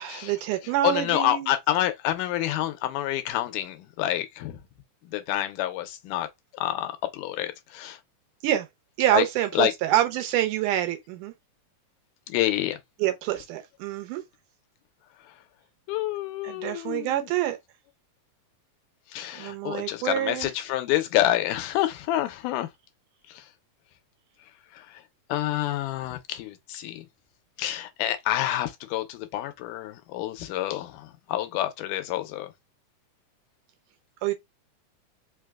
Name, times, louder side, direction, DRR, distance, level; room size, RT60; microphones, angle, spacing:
voice 1, 0.0-1.6 8.4-8.7 9.0-11.3 13.0-14.2 16.4-17.6 19.4-20.5 34.2-34.3, right 13 dB, 85° right, 2.2 m, -26 dB
voice 2, 0.8-4.6 5.1-6.3 6.5-8.0 9.1-9.2 9.6-9.7 12.3-12.8 15.9-17.3 19.1-22.7 23.3-23.4 24.7-25.0 25.3-27.1 27.6-32.5, left 13 dB, 90° left, 2.1 m, -28 dB
5.1 x 2.1 x 2.3 m
omnidirectional pair, 3.6 m